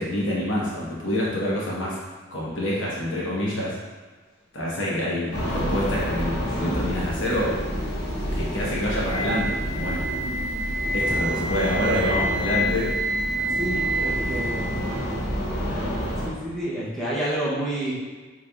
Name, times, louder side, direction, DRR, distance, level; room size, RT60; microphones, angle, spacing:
voice 1, 0.0-2.0 2.3-3.8 4.5-7.5 8.3-10.1 10.9-12.9 13.7-14.8, left 1 dB, 80° left, -6 dB, 1.1 m, -27 dB
sound 1, 5.3-16.3, equal, 60° left, 0.8 m, -29 dB
Wind instrument woodwind instrument, 9.0-15.0, right 1 dB, 55° right, 0.7 m, -28 dB
voice 2, 13.4-14.7 16.2-17.9, right 1 dB, ahead, -9 dB, 0.7 m, -29 dB
4.0 x 3.3 x 2.3 m, 1.4 s
head